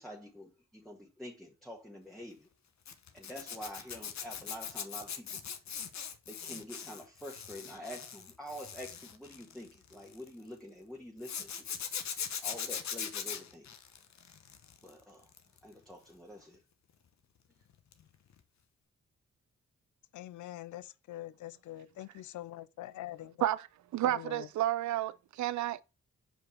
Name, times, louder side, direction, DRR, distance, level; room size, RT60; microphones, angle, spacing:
voice 1, 0.0-2.5 3.1-5.4 6.3-11.7 12.4-13.7 14.8-15.3 15.6-16.6, equal, ahead, 1.6 m, -47 dB
Zipper (clothing), 2.9-10.3 11.2-14.9 15.2-15.6 17.9-18.1 18.3-18.4, left 7 dB, 70° left, 1.0 m, -41 dB
voice 2, 20.1-23.5 24.0-24.5, left 14 dB, 90° left, 0.5 m, -44 dB
voice 3, 23.9-25.8, right 13 dB, 80° right, 0.5 m, -31 dB
5.2 x 4.4 x 4.4 m
cardioid pair, 55°, 29 cm